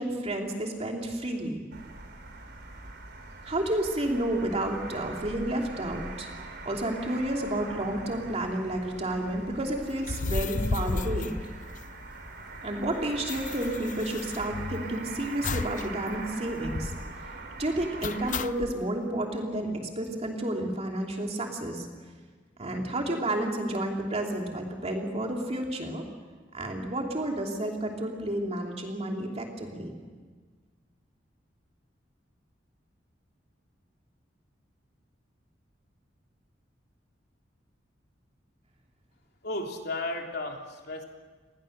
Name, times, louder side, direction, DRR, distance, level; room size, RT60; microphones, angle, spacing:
voice 1, 0.0-1.6 3.4-6.3 6.6-11.3 12.6-16.9 17.6-21.9 22.6-26.0 26.5-29.9, right 1 dB, 35° right, 1 dB, 2.9 m, -31 dB
sound 1, 1.7-18.4, right 2 dB, 60° right, 4.1 m, -42 dB
sound 2, 10.0-12.3 12.5-12.6 12.8-14.9 15.4-15.9 16.1-16.2 16.6-17.1 18.0-18.7, left 3 dB, 45° left, 0.6 m, -33 dB
voice 2, 39.4-41.0, left 2 dB, 60° left, 2 dB, 3.3 m, -34 dB
29.5 x 20.5 x 6.6 m, 1.5 s
head